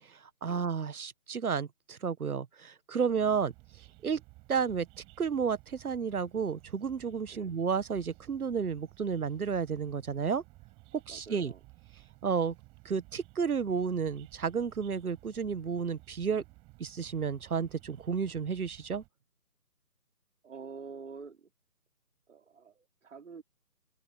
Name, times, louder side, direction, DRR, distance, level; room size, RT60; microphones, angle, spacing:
voice 1, 0.1-3.5 4.0-4.2 4.5-4.9 5.2-10.4 10.9-11.5 12.2-12.5 12.8-16.4 16.8-19.0, right 6 dB, 65° right, 1.1 m, -32 dB
sound 1, 3.1-19.1, right 23 dB, 10° right, 5.5 m, -56 dB
voice 2, 11.1-11.6 20.4-21.5 22.3-23.4, right 5 dB, 50° right, 2.8 m, -47 dB
open air
figure-of-eight pair, 165°, 47 cm